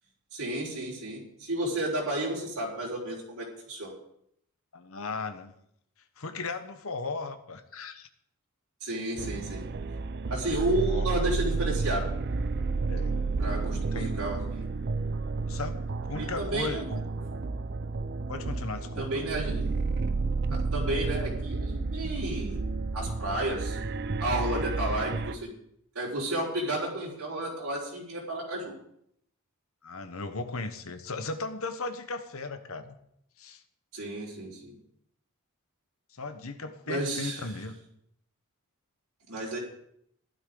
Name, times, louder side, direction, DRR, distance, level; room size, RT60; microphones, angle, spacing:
voice 1, 0.3-3.9 8.8-9.7 10.3-12.0 13.4-14.7 16.2-16.9 17.3-17.4 19.0-19.8 20.5-22.6 22.9-23.8 24.2-25.5 25.9-28.7 33.9-34.8 36.9-37.5 39.3-39.6, right 1 dB, 70° right, -5 dB, 4.7 m, -32 dB
voice 2, 4.7-5.5 6.2-8.1 10.9-11.1 12.9-13.2 13.7-14.2 15.5-17.0 18.3-19.1 29.8-32.9 33.4-33.6 36.1-37.7, left 3 dB, 70° left, 9 dB, 1.1 m, -36 dB
sound 1, 9.2-25.3, right 3 dB, 50° right, 0.5 m, -31 dB
15.5 x 12.0 x 3.9 m, 0.72 s
head